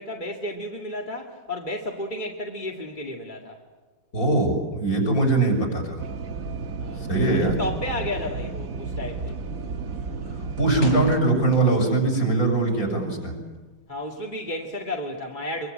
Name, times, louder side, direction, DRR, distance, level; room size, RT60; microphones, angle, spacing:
voice 1, 0.0-3.6 6.8-7.1 7.3-9.4 13.9-15.7, left 1 dB, 25° left, 0 dB, 2.1 m, -32 dB
voice 2, 4.1-6.0 7.1-7.6 10.6-13.3, right 2 dB, 45° left, 1 dB, 7.1 m, -21 dB
sound 1, 6.0-11.2, right 4 dB, 45° right, 1.5 m, -33 dB
sound 2, 10.8-12.1 12.4-13.8, left 3 dB, 60° left, 5.8 m, -39 dB
25.0 x 24.5 x 9.0 m, 1.2 s
omnidirectional pair, 2.2 m